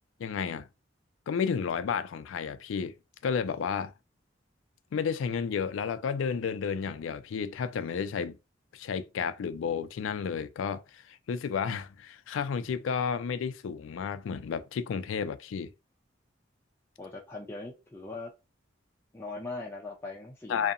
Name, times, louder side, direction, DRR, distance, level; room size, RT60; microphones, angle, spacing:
voice 1, 0.2-0.7 1.3-2.9 3.2-3.9 4.9-8.4 8.7-15.7 20.5-20.7, left 6 dB, 80° left, 0.3 m, -32 dB
voice 2, 17.0-18.3 19.1-20.7, left 3 dB, 15° left, 0.4 m, -40 dB
2.7 x 2.1 x 2.4 m
head